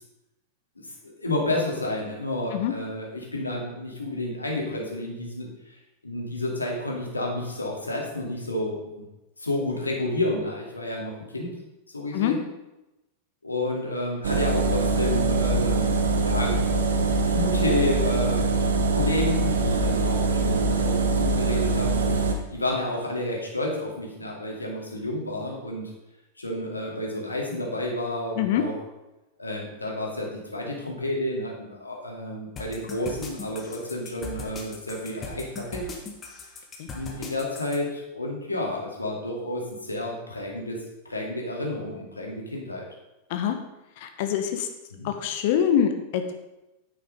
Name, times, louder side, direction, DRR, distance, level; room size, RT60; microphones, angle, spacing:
voice 1, 0.8-5.8 6.0-9.0 9.4-11.5 11.9-12.4 13.4-15.9 16.2-16.5 17.3-18.5 18.9-25.9 26.4-28.8 29.4-35.9 36.9-40.8 41.1-42.8 44.9-45.1, left 1 dB, 80° left, -1 dB, 2.3 m, -30 dB
sound 1, 14.2-22.3, right 3 dB, 65° right, 1.1 m, -23 dB
sound 2, 32.6-37.8, left 3 dB, 25° left, 1.6 m, -38 dB
voice 2, 44.0-44.7 45.0-46.4, left 9 dB, 50° left, 7 dB, 1.2 m, -24 dB
9.5 x 6.4 x 5.2 m, 0.98 s
figure-of-eight pair, 90°, 0 cm